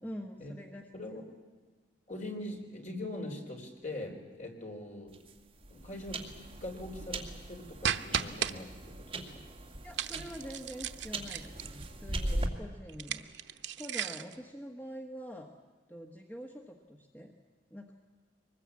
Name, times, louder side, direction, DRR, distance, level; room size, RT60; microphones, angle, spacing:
voice 1, 0.0-1.2 9.8-15.5 15.9-17.3 17.7-17.9, equal, 10° left, 3 dB, 1.3 m, -45 dB
voice 2, 2.1-5.1 5.7-6.2 6.6-9.4 12.3-12.5, left 1 dB, 40° left, 2 dB, 4.0 m, -42 dB
sound 1, 5.1-12.5, right 1 dB, 30° right, 2.2 m, -40 dB
sound 2, 7.8-8.5 9.9-11.8 12.9-14.4, right 8 dB, 75° right, 1.0 m, -35 dB
24.0 x 20.5 x 8.5 m, 1.4 s
head